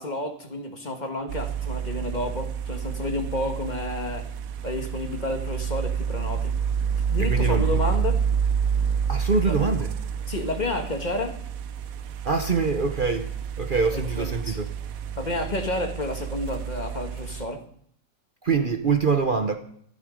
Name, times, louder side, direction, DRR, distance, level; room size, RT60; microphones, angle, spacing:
voice 1, 0.0-4.3 4.6-6.5 7.1-8.2 9.4-9.8 10.2-11.4 13.9-14.6 15.1-17.6, left 1 dB, 35° left, 1.7 m, -30 dB
sound 1, 1.3-17.5, right 7 dB, 85° right, 1.2 m, -29 dB
voice 2, 7.3-7.8 9.1-9.9 12.2-13.3 13.6-14.7 18.4-19.6, right 4 dB, 45° right, 1.0 m, -24 dB
14.0 x 12.5 x 5.1 m
omnidirectional pair, 1.4 m